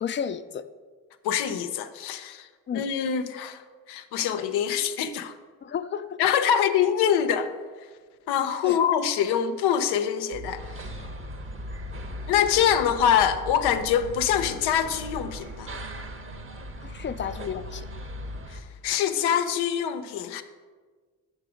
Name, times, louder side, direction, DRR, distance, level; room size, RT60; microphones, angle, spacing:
voice 1, 0.0-0.7 2.7-2.8 5.6-6.2 6.5-6.6 8.6-8.8 16.8-17.9, left 7 dB, 30° left, 0.4 m, -32 dB
voice 2, 1.2-2.5 2.7-5.3 6.2-7.5 8.3-11.0 12.3-15.7 18.5-20.4, left 9 dB, 90° left, 0.5 m, -25 dB
sound 1, 10.3-18.4, left 2 dB, 80° right, 1.8 m, -41 dB
sound 2, 10.6-18.6, right 1 dB, 35° right, 0.8 m, -41 dB
6.0 x 5.2 x 4.9 m
supercardioid pair, 55°, 38 cm